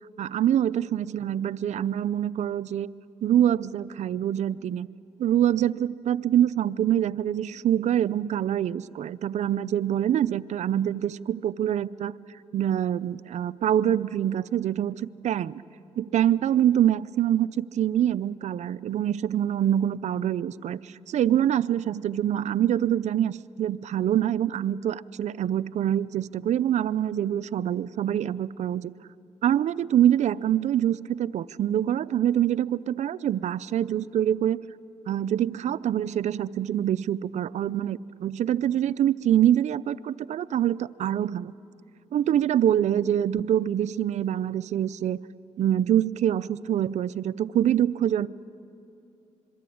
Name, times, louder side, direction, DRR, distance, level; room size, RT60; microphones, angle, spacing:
voice 1, 0.2-2.9 3.2-4.9 5.2-12.1 12.5-15.6 16.0-28.9 29.4-34.6 35.1-41.5 42.1-45.2 45.6-48.3, right 10 dB, 70° right, 16 dB, 0.5 m, -25 dB
26.5 x 22.5 x 8.6 m, 2.8 s
cardioid pair, 80°, 12 cm